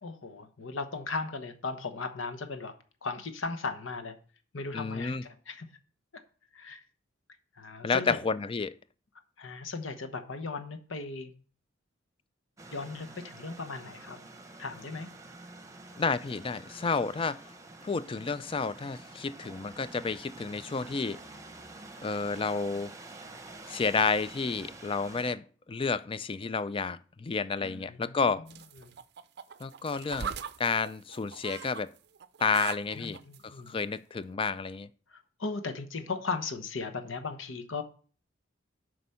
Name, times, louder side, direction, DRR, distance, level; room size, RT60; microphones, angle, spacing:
voice 1, 0.0-2.7 3.0-4.2 4.5-5.7 6.5-6.8 7.6-8.2 9.4-11.3 12.7-14.2 14.6-15.1 27.6-28.3 28.8-28.9 33.0-33.8 35.1-37.8, left 4 dB, 80° left, 1.1 m, -37 dB
voice 2, 4.7-5.2 7.8-8.7 16.0-17.4 17.8-21.2 22.0-22.9 23.7-28.4 29.6-30.3 30.6-31.9 32.4-33.2 33.4-34.9, left 4 dB, 25° left, 0.4 m, -30 dB
sound 1, 12.6-25.3, right 2 dB, 15° right, 0.9 m, -48 dB
sound 2, 28.5-31.8 32.2-33.4 34.1-34.2, right 7 dB, 55° right, 0.5 m, -40 dB
7.9 x 5.2 x 5.6 m
head